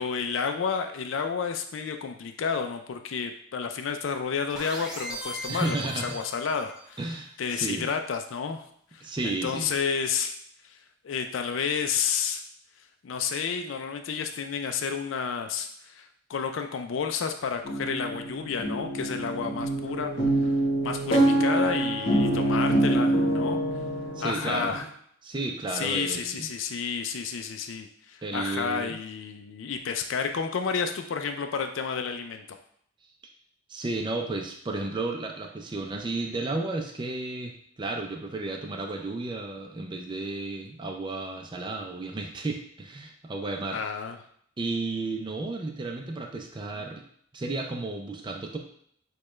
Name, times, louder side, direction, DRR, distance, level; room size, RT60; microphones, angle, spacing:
voice 1, 0.0-5.8 6.0-7.0 7.4-8.6 8.9-10.3 10.7-10.8 11.0-12.4 13.0-20.1 20.8-23.6 24.2-24.9 25.7-32.4 43.7-44.2, left 6 dB, 75° left, 6 dB, 0.4 m, -31 dB
sound 1, 4.5-7.0, equal, 5° right, 0.8 m, -38 dB
voice 2, 5.5-6.2 7.0-7.9 9.0-9.7 24.2-24.7 25.2-26.5 28.2-29.0 33.7-43.8 44.6-47.0 47.3-48.6, right 2 dB, 25° right, 2 dB, 0.4 m, -33 dB
sound 2, 17.6-24.8, right 1 dB, 60° left, 1.3 m, -26 dB
6.5 x 2.3 x 3.1 m, 0.66 s
head